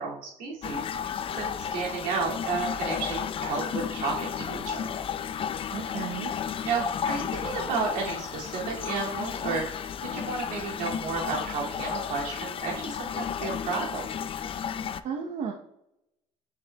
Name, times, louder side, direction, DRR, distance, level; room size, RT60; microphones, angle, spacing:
voice 1, 0.0-3.6 3.9-4.8 6.6-14.0, right 5 dB, 75° right, -3 dB, 2.3 m, -32 dB
sound 1, 0.6-15.0, left 8 dB, 40° left, 0.4 m, -33 dB
voice 2, 5.7-6.3 15.0-15.5, right 7 dB, 60° right, 1 dB, 0.8 m, -33 dB
6.7 x 6.6 x 2.2 m, 0.80 s
supercardioid pair, 85°, 14 cm